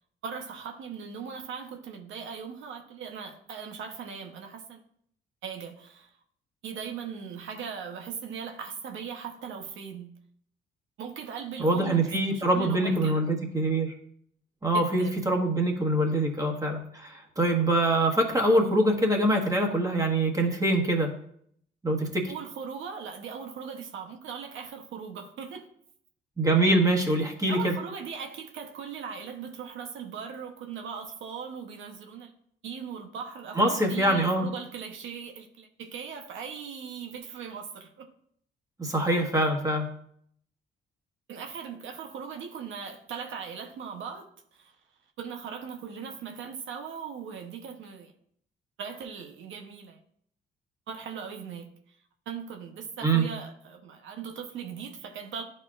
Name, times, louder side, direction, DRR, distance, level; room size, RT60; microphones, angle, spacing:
voice 1, 0.2-4.8 5.4-6.1 6.6-10.2 11.0-13.2 14.7-15.2 22.3-25.7 27.5-32.3 32.6-38.1 41.3-44.7 45.2-48.1 48.8-50.0 50.9-52.0 52.3-55.4, right 6 dB, 80° right, 1.0 m, -39 dB
voice 2, 11.6-13.9 14.6-21.1 21.8-22.3 26.4-27.7 33.5-34.5 38.8-39.9 53.0-53.2, right 1 dB, 15° right, 1.5 m, -24 dB
11.0 x 4.4 x 2.5 m
cardioid pair, 90°, 20 cm